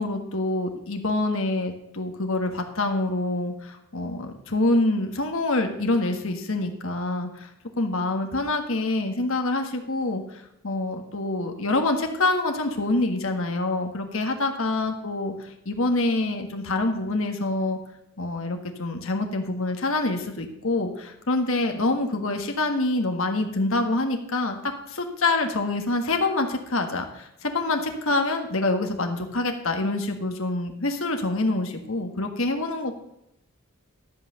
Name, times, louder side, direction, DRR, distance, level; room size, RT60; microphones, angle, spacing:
voice 1, 0.0-7.5 7.8-15.3 15.6-17.8 18.2-33.0, left 2 dB, 65° left, 5 dB, 1.6 m, -26 dB
13.0 x 5.8 x 6.5 m, 0.81 s
head